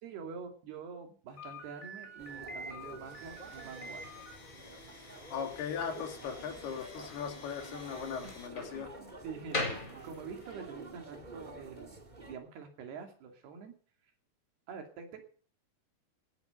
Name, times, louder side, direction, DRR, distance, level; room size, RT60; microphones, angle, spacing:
voice 1, 0.0-4.1 8.8-12.0 12.3-13.7 14.7-15.2, right 6 dB, 85° right, 4 dB, 4.7 m, -46 dB
Slam, 1.4-10.7, left 2 dB, 20° left, 4.0 m, -43 dB
sound 1, 2.2-12.3, right 2 dB, 50° right, 0.5 m, -49 dB
Domestic sounds home sounds, 3.0-8.5, left 4 dB, 45° left, 4.3 m, -54 dB
voice 2, 5.3-8.9, left 7 dB, 80° left, 5 dB, 4.4 m, -38 dB
17.0 x 10.5 x 6.6 m, 0.43 s
omnidirectional pair, 4.5 m